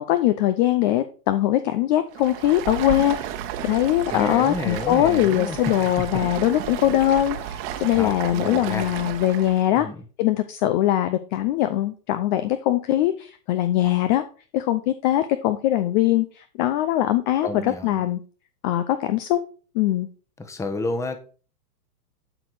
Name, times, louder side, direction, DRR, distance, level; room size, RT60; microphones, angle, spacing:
voice 1, 0.0-3.3 3.6-9.9 10.2-14.2 14.5-18.2 18.6-19.4 19.7-20.1, left 13 dB, 30° left, 11 dB, 0.6 m, -22 dB
Stream, 2.1-9.7, right 10 dB, 35° right, 1.4 m, -32 dB
voice 2, 4.1-5.6 7.9-8.9 9.7-10.0 17.4-18.0 20.4-21.2, left 2 dB, 5° left, 7 dB, 1.1 m, -30 dB
12.0 x 4.2 x 4.8 m, 0.39 s
hypercardioid pair, 135°, 49 cm